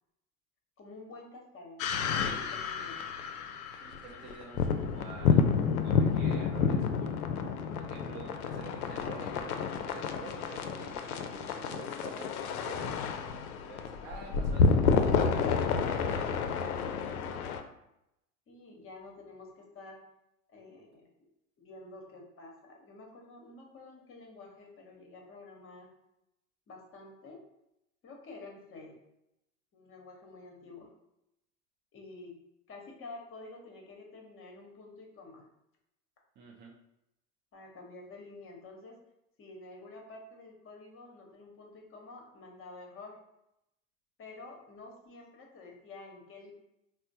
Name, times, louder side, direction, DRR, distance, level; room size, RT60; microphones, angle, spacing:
voice 1, 0.8-3.0 18.5-20.0 20.5-21.1 21.6-25.9 26.7-27.4 28.0-29.0 29.7-30.9 31.9-32.4 32.7-35.5 37.5-39.0 39.4-43.2 44.2-46.5, left 3 dB, 30° left, 0 dB, 0.9 m, -49 dB
sound 1, 1.8-17.6, left 5 dB, 70° left, 0.5 m, -30 dB
voice 2, 3.8-5.4 5.8-7.2 7.8-12.9 13.7-15.2 15.8-16.4 36.4-36.7, right 4 dB, 25° right, -1 dB, 0.5 m, -48 dB
4.2 x 2.0 x 2.6 m, 0.84 s
figure-of-eight pair, 80°, 45 cm